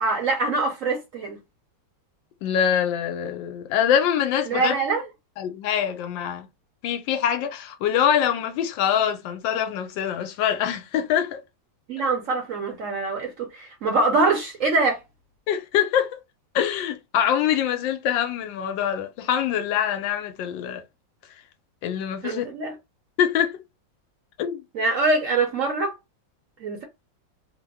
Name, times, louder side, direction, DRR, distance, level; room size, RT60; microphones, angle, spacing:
voice 1, 0.0-1.4 4.5-5.0 11.9-15.0 22.2-22.7 24.7-25.9 26.6-26.8, right 3 dB, 60° right, 0.8 m, -24 dB
voice 2, 2.4-4.7 5.4-6.5 6.8-11.4 15.5-16.2 16.5-20.8 21.8-22.4 23.2-23.6 24.4-24.6, left 9 dB, 85° left, 1.3 m, -24 dB
3.2 x 2.1 x 3.4 m
omnidirectional pair, 2.0 m